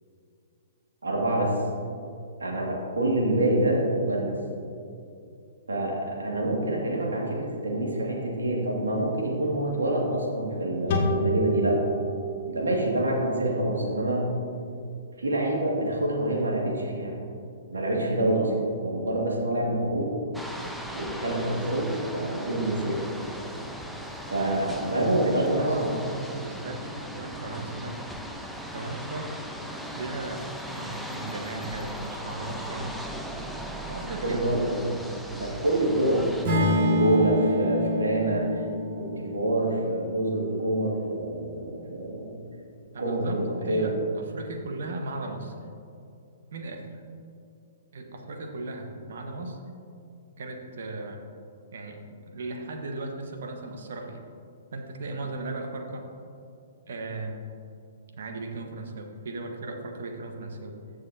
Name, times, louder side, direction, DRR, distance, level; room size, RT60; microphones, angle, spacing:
voice 1, 1.0-1.5 2.4-4.4 5.7-11.8 12.5-14.2 15.2-17.1 17.7-20.1 20.9-23.0 24.3-25.9 34.2-34.8 35.4-38.6 39.0-42.3 43.0-43.9, right 1 dB, 85° right, -2 dB, 2.2 m, -26 dB
sound 1, 10.9-14.2, right 1 dB, 50° left, 1.7 m, -30 dB
sound 2, 20.3-36.5, equal, ahead, 0.7 m, -38 dB
voice 2, 25.1-25.8 26.0-28.0 28.7-29.3 29.9-30.5 30.7-32.9 33.9-34.4 36.6-36.9 42.9-45.5 46.5-47.0 47.9-49.6 50.4-51.2 51.7-52.0 52.3-54.2 54.7-56.1 56.9-57.4 58.2-60.8, right 2 dB, 65° right, 3 dB, 1.3 m, -37 dB
Acoustic guitar / Strum, 36.4-40.7, left 1 dB, 45° right, 2.0 m, -27 dB
14.5 x 6.4 x 2.8 m, 2.6 s
hypercardioid pair, 125°, 0 cm